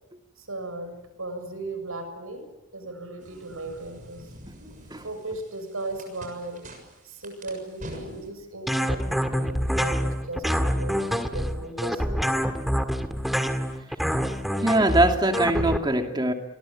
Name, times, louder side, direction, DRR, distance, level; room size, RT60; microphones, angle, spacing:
voice 1, 0.4-2.4 2.7-4.2 5.0-6.7 7.0-12.2, right 2 dB, 80° right, 7.0 m, -37 dB
sound 1, 3.2-8.3, right 1 dB, 35° right, 7.0 m, -45 dB
sound 2, 8.7-15.8, equal, ahead, 1.8 m, -26 dB
voice 2, 14.6-16.3, right 1 dB, 20° right, 2.6 m, -22 dB
28.0 x 23.0 x 8.8 m
head